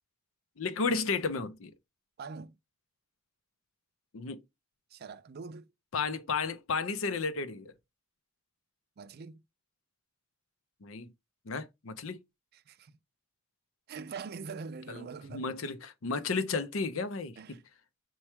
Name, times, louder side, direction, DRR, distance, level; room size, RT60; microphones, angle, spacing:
voice 1, 0.6-1.7 4.1-4.4 5.9-7.7 10.8-11.1 11.5-12.2 14.9-17.6, left 4 dB, 70° left, 0.6 m, -33 dB
voice 2, 2.2-2.6 4.9-5.7 9.0-9.4 12.7-12.9 13.9-15.6 17.4-17.6, right 5 dB, 50° right, 0.4 m, -43 dB
4.5 x 2.3 x 4.4 m
head